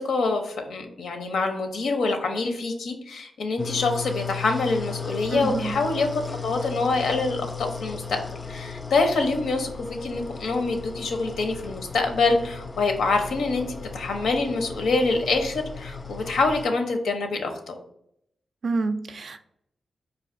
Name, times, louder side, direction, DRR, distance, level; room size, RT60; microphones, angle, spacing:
voice 1, 0.0-6.1 6.4-8.2 8.5-17.7, left 3 dB, 85° left, 4 dB, 0.6 m, -25 dB
sound 1, 3.6-16.6, left 5 dB, 35° left, 0.3 m, -36 dB
voice 2, 5.3-5.7 18.6-19.5, right 3 dB, 65° right, 9 dB, 0.3 m, -28 dB
4.3 x 2.4 x 2.5 m, 0.74 s
cardioid pair, 50°, 0 cm